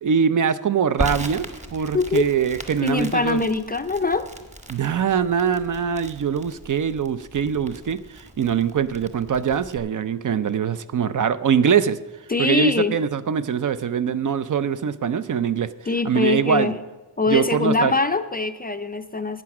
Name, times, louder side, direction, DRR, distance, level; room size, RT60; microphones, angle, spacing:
voice 1, 0.0-3.4 4.7-12.0 12.4-15.7 16.0-16.7 17.3-17.9, right 7 dB, 45° right, 13 dB, 0.5 m, -23 dB
Crackle, 1.0-9.8, right 1 dB, 15° right, 1.2 m, -37 dB
voice 2, 1.9-2.3 2.8-4.3 12.3-12.9 15.9-16.7 17.2-19.4, left 3 dB, 20° left, 9 dB, 0.4 m, -23 dB
12.0 x 8.7 x 5.9 m, 1.2 s
wide cardioid pair, 125°, 42 cm